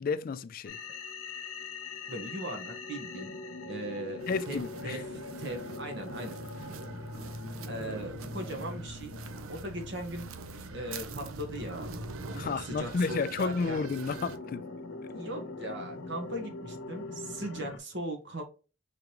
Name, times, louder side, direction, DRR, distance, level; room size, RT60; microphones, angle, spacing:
voice 1, 0.0-0.8 4.3-5.0 12.3-14.7, left 4 dB, 45° left, 0.3 m, -31 dB
sound 1, 0.7-17.8, left 3 dB, 80° left, 0.9 m, -42 dB
voice 2, 2.1-6.4 7.7-9.2 9.5-10.3 10.7-12.0 12.4-13.8 15.1-18.4, right 1 dB, 60° right, 1.5 m, -39 dB
sound 2, 4.2-14.4, right 4 dB, 85° right, 0.6 m, -45 dB
5.0 x 3.5 x 3.0 m
head